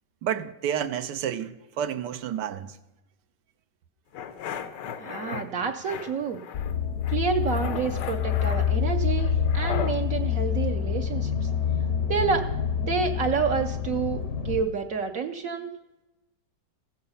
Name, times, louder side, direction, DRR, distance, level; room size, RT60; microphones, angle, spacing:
voice 1, 0.2-2.8, right 9 dB, 80° right, 1.3 m, -30 dB
sound 1, 4.1-5.4 5.8-6.7 7.0-10.0, left 7 dB, 80° left, 1.4 m, -37 dB
voice 2, 5.0-6.4 7.1-11.5 12.1-12.5 12.8-15.7, right 6 dB, 60° right, 0.9 m, -29 dB
sound 2, 6.5-14.6, left 8 dB, 65° left, 1.1 m, -27 dB
15.5 x 7.9 x 5.5 m
omnidirectional pair, 1.9 m